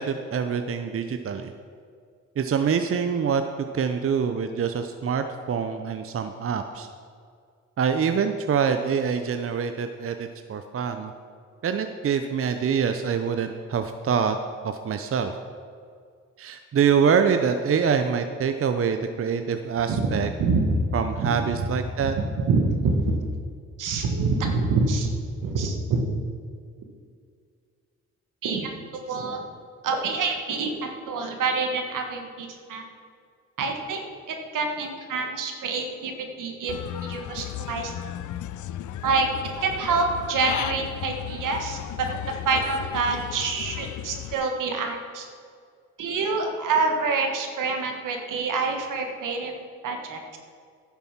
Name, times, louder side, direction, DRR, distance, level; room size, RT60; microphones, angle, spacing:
voice 1, 0.0-1.5 2.4-3.4 3.7-6.9 7.8-11.1 11.6-14.4 14.6-15.3 16.4-20.3 20.9-22.1, right 6 dB, 45° right, 8 dB, 0.7 m, -25 dB
voice 2, 22.5-23.2 23.8-25.1 25.4-26.0 28.4-29.4 29.8-32.8 33.6-34.0 34.3-36.1 36.4-36.7 37.0-37.9 39.0-39.3 39.6-45.3 46.0-49.5 49.8-50.4, right 4 dB, 75° right, 4 dB, 1.6 m, -26 dB
Human voice / Bird, 36.7-44.3, left 12 dB, 65° left, 0.5 m, -35 dB
11.0 x 7.0 x 5.8 m, 2.2 s
cardioid pair, 65°, 32 cm